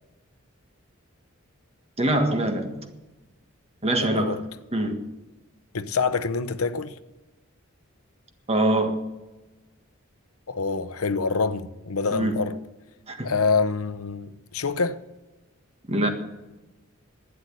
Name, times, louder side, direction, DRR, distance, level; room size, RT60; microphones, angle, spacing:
voice 1, 2.0-2.8 3.8-4.4 4.7-5.0 8.5-9.0 12.1-12.4 13.1-13.3 15.9-16.1, right 1 dB, 30° right, 1.6 m, -24 dB
voice 2, 4.0-4.4 5.7-7.0 10.5-12.6 13.2-15.0, left 4 dB, 85° left, 0.8 m, -26 dB
12.0 x 9.7 x 9.7 m
head